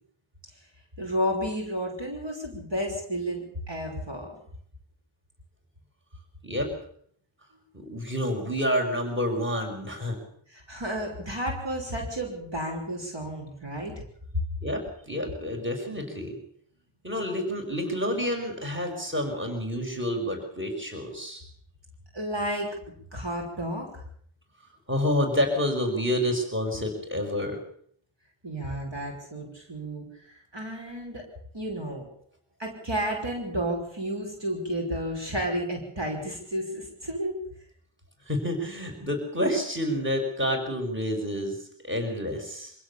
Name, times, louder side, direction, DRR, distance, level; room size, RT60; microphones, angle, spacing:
voice 1, 1.0-4.3 10.5-14.0 14.3-14.4 22.1-22.8 23.1-24.0 28.4-31.3 31.5-32.0 32.6-37.3, equal, 55° right, 1 dB, 5.8 m, -32 dB
voice 2, 7.7-10.2 14.6-16.4 17.0-21.4 24.9-27.6 38.3-42.7, equal, 25° right, 3 dB, 5.9 m, -29 dB
25.5 x 16.5 x 7.1 m, 0.63 s
cardioid pair, 45°, 50 cm